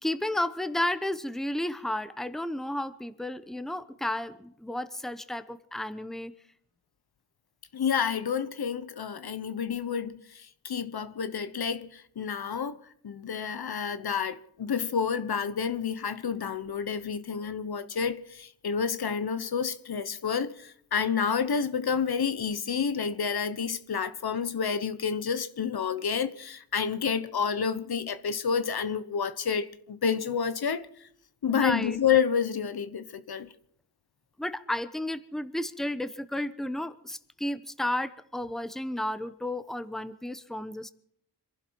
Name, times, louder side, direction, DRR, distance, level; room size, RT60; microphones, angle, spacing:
voice 1, 0.0-6.3 31.5-32.0 34.4-40.9, left 1 dB, ahead, 0.9 m, -32 dB
voice 2, 7.7-12.8 13.0-31.1 31.4-33.5, left 6 dB, 70° left, 1.0 m, -29 dB
25.5 x 11.5 x 4.7 m
wide cardioid pair, 65°, 39 cm